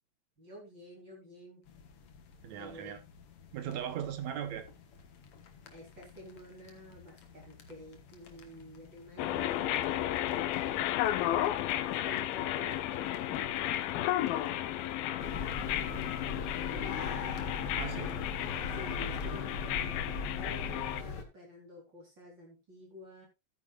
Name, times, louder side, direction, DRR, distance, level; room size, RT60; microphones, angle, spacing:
voice 1, 0.4-1.6 2.5-3.1 5.7-11.1 11.9-17.4 18.7-23.3, left 1 dB, 30° right, 4.7 m, -50 dB
sound 1, 1.6-19.4, left 6 dB, 55° left, 1.8 m, -56 dB
voice 2, 2.4-3.0 3.5-4.7 17.8-18.2, right 9 dB, 70° right, 1.8 m, -38 dB
metro rnb-perelachaise-saint-maur, 9.2-21.0, left 13 dB, 90° left, 2.6 m, -33 dB
sound 2, 15.2-21.2, left 4 dB, 75° left, 0.9 m, -38 dB
14.5 x 9.3 x 2.4 m
omnidirectional pair, 4.1 m